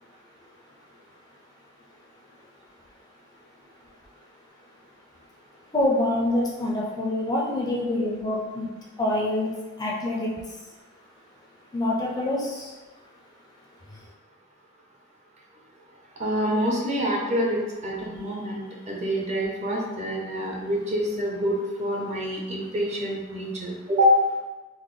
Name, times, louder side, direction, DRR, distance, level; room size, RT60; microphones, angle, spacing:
voice 1, 5.7-8.7 9.0-9.5 9.8-10.3 11.7-12.7 13.9-14.0, left 1 dB, 20° left, -3 dB, 0.4 m, -26 dB
voice 2, 16.2-18.6 18.9-24.2, equal, 30° right, -2 dB, 0.6 m, -26 dB
3.9 x 2.0 x 3.2 m, 1.2 s
head